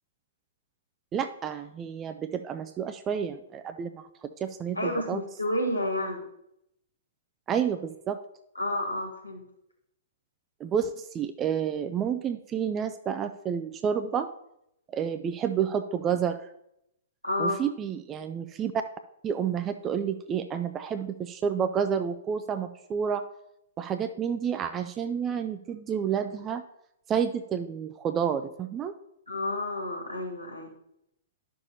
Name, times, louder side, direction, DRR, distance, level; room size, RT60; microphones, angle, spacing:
voice 1, 1.1-5.2 7.5-8.2 10.6-14.3 14.9-16.5 17.4-18.8 19.2-23.2 23.8-26.6 27.1-28.9, right 7 dB, 20° right, 9 dB, 0.3 m, -30 dB
voice 2, 4.7-6.2 8.6-9.4 17.2-17.6 29.3-30.7, left 1 dB, 85° left, 2 dB, 1.5 m, -30 dB
10.5 x 6.5 x 2.7 m, 0.79 s
figure-of-eight pair, 115°, 0 cm